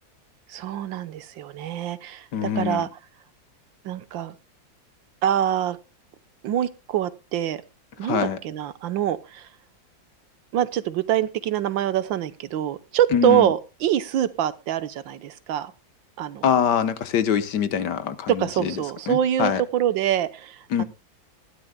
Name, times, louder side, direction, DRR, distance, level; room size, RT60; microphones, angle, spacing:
voice 1, 0.5-2.9 3.8-4.3 5.2-5.8 6.4-7.6 8.0-9.5 10.5-15.7 16.2-16.5 18.4-20.8, right 11 dB, 85° right, 1.6 m, -25 dB
voice 2, 2.3-2.8 8.1-8.4 13.1-13.5 16.4-18.7 19.1-19.6 20.7-20.8, left 8 dB, 65° left, 1.6 m, -24 dB
19.5 x 13.0 x 2.2 m
omnidirectional pair, 2.0 m